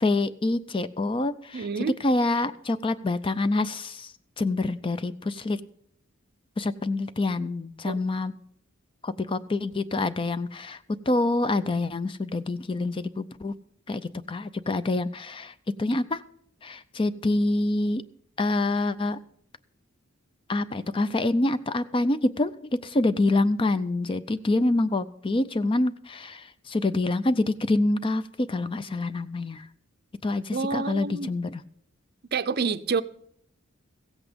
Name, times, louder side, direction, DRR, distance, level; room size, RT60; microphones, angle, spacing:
voice 1, 0.0-1.7 2.0-4.1 4.4-5.6 6.6-8.3 9.0-10.8 11.1-13.5 13.9-14.0 14.3-15.5 15.8-16.2 16.6-18.0 18.4-19.2 20.5-29.6 30.2-31.6, left 2 dB, 25° left, 0.4 m, -26 dB
voice 2, 1.5-2.0 7.8-8.0 30.5-31.3 32.3-33.0, right 5 dB, 50° right, 0.5 m, -28 dB
16.0 x 8.1 x 5.1 m
head